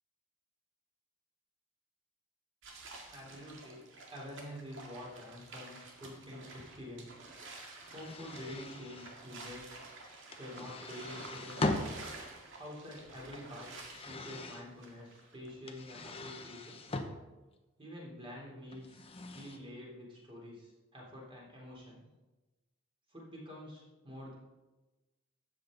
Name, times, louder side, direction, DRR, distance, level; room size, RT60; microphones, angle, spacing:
sound 1, 2.6-15.5, right 3 dB, 65° right, 2.1 m, -51 dB
voice 1, 3.0-3.8 4.1-7.2 7.9-9.7 10.4-11.8 12.6-13.7 14.0-16.8 17.8-22.0 23.1-24.4, left 1 dB, 25° right, -3 dB, 3.6 m, -48 dB
sound 2, 7.8-9.1 10.3-12.1 13.1-14.6 15.6-17.1 18.7-19.6, left 2 dB, 30° left, 0.9 m, -40 dB
13.0 x 8.5 x 4.0 m, 1.1 s
head